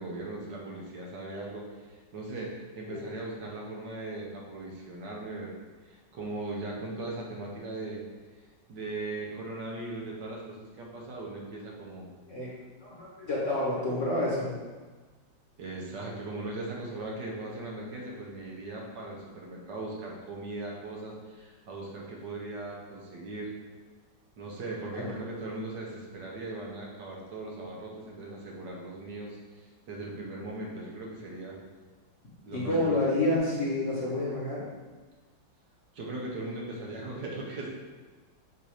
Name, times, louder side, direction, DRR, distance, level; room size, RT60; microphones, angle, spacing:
voice 1, 0.0-5.5 5.8-8.0 8.7-12.1 15.6-23.5 24.4-31.6 32.4-33.0 35.9-37.7, right 2 dB, 70° right, -2 dB, 1.7 m, -39 dB
voice 2, 12.8-14.5 25.0-25.1 32.5-34.6, left 1 dB, 45° left, -5 dB, 1.5 m, -28 dB
7.2 x 2.7 x 4.9 m, 1.3 s
omnidirectional pair, 2.0 m